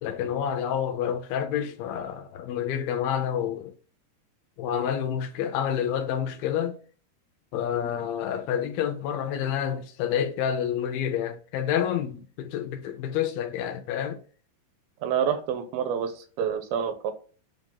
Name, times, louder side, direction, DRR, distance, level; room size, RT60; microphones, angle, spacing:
voice 1, 0.0-3.7 4.6-6.8 7.5-14.2, left 9 dB, 80° left, 2.4 m, -28 dB
voice 2, 15.0-17.1, right 8 dB, 80° right, 2.5 m, -28 dB
7.4 x 2.5 x 5.7 m
omnidirectional pair, 4.4 m